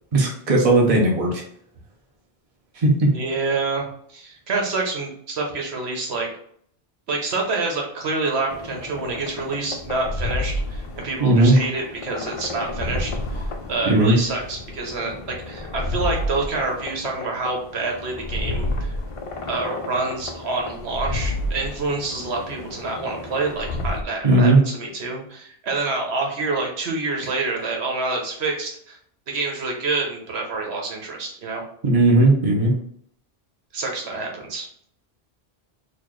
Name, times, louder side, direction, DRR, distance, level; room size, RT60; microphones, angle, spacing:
voice 1, 0.1-1.4 2.8-3.1 11.2-11.6 13.9-14.2 24.2-24.6 31.8-32.7, right 2 dB, 35° right, 0 dB, 0.8 m, -16 dB
voice 2, 3.1-6.3 7.1-19.0 19.5-29.0 29.3-31.6 33.7-34.7, right 3 dB, 80° right, 1 dB, 1.1 m, -27 dB
sound 1, 8.5-24.0, left 2 dB, 55° left, 0.3 m, -31 dB
4.1 x 2.4 x 3.1 m, 0.64 s
omnidirectional pair, 1.1 m